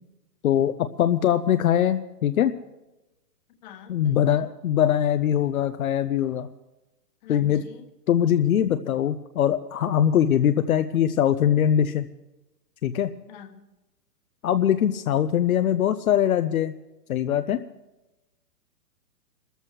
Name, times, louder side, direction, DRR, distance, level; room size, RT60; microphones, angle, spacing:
voice 1, 0.4-2.5 3.9-6.5 7.3-7.6 8.1-12.1 12.8-13.1 14.4-16.8 17.1-17.6, left 10 dB, 60° left, 8 dB, 0.8 m, -22 dB
voice 2, 3.6-4.5 7.2-7.9 13.3-13.6, left 8 dB, 25° left, 5 dB, 1.4 m, -46 dB
26.0 x 13.5 x 3.1 m, 0.99 s
hypercardioid pair, 165°, 48 cm